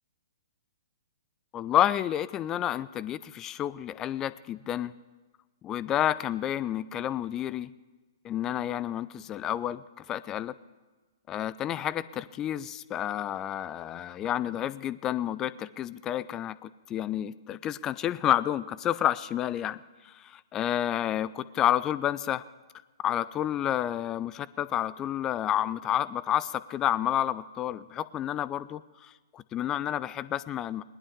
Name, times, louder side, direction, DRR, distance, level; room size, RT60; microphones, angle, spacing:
voice 1, 1.5-4.9 5.6-7.7 8.2-9.8 10.1-10.5 11.3-19.8 20.0-22.4 23.0-30.8, left 11 dB, 20° left, 17 dB, 0.3 m, -30 dB
19.5 x 11.0 x 3.6 m, 1.3 s
figure-of-eight pair, 120°, 3 cm